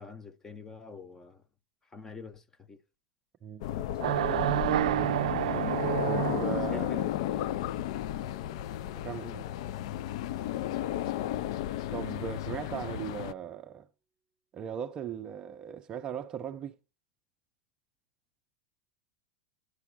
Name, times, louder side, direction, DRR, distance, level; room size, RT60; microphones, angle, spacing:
voice 1, 0.0-1.4 1.9-2.8 6.7-7.0 9.2-9.7, left 5 dB, 10° left, 0.7 m, -46 dB
voice 2, 3.4-3.8 6.0-7.1 9.0-9.4 11.9-13.9 14.5-16.7, right 8 dB, 25° right, 0.5 m, -38 dB
sound 1, 3.6-13.3, left 12 dB, 55° left, 0.4 m, -33 dB
sound 2, 4.0-6.9, right 15 dB, 80° right, 0.4 m, -29 dB
Guitar, 8.1-13.1, right 1 dB, 75° left, 3.1 m, -63 dB
9.6 x 5.8 x 6.1 m
supercardioid pair, 160°, 4 cm